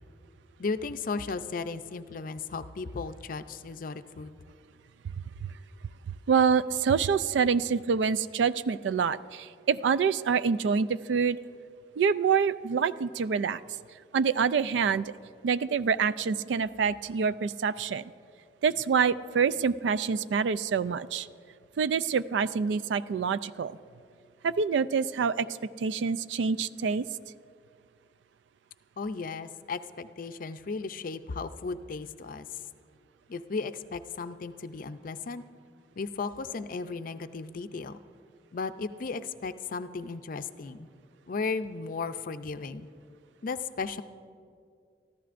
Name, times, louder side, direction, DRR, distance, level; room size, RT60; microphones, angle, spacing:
voice 1, 0.6-4.3 29.0-32.5 33.3-35.4 36.0-38.0 38.5-40.9 41.3-42.9 43.4-44.0, left 4 dB, 50° left, 11 dB, 0.5 m, -35 dB
voice 2, 6.1-11.4 12.0-13.6 14.1-15.1 15.4-18.1 18.6-21.3 21.8-23.8 24.4-25.5 25.8-27.1, right 6 dB, 85° right, 16 dB, 0.3 m, -26 dB
25.0 x 14.0 x 2.5 m, 2.3 s
head